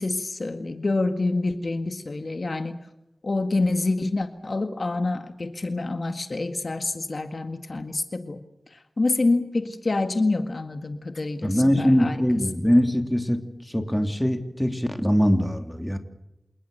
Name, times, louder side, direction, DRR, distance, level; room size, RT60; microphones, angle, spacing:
voice 1, 0.0-2.8 3.2-8.4 8.7-12.2 12.5-12.6, left 2 dB, 60° left, 8 dB, 1.9 m, -27 dB
voice 2, 11.4-13.4 13.7-16.0, equal, 5° left, 6 dB, 3.0 m, -22 dB
28.0 x 19.5 x 6.8 m, 0.90 s
wide cardioid pair, 65°, 0 cm